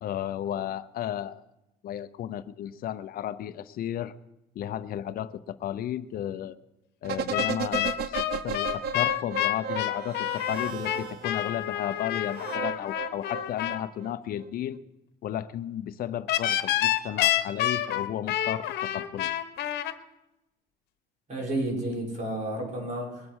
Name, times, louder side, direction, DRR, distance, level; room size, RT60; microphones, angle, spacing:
voice 1, 0.0-1.4 1.8-4.1 4.5-6.6 7.0-14.8 15.2-19.3, left 11 dB, 60° left, 13 dB, 0.7 m, -34 dB
sound 1, 7.0-11.5 12.3-14.1 14.4-14.5, right 6 dB, 70° right, 0.8 m, -35 dB
sound 2, 7.3-13.8 16.3-19.9, left 13 dB, 75° left, 1.2 m, -28 dB
voice 2, 21.3-23.3, right 1 dB, 45° right, -2 dB, 6.2 m, -31 dB
21.5 x 8.4 x 6.3 m, 0.95 s
cardioid pair, 110°, 17 cm